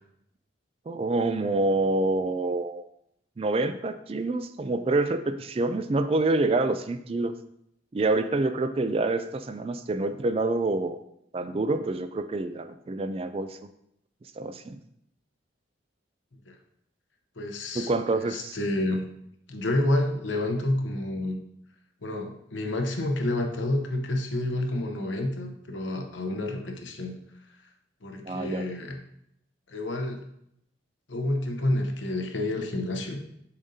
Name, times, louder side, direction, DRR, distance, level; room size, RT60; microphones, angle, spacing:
voice 1, 0.9-2.9 3.4-7.3 7.9-11.0 11.3-13.6 14.4-14.8 17.7-18.6 28.3-28.7, right 2 dB, 30° right, 10 dB, 0.3 m, -27 dB
voice 2, 17.4-19.0 19.5-21.4 22.0-27.2 28.0-29.0 29.7-30.2 31.1-33.2, left 1 dB, 80° left, 4 dB, 0.9 m, -29 dB
7.1 x 5.1 x 2.8 m, 0.76 s
head